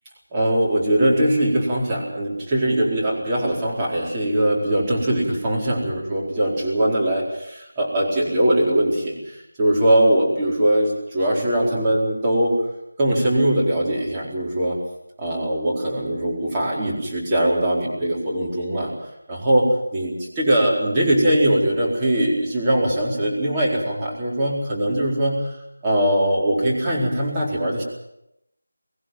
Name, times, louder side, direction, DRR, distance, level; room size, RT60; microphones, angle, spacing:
voice 1, 0.3-12.5 13.0-14.8 15.2-18.9 19.3-25.5 25.8-27.8, right 1 dB, 15° right, -5 dB, 4.4 m, -21 dB
23.5 x 16.5 x 7.7 m, 0.82 s
figure-of-eight pair, 170°, 0 cm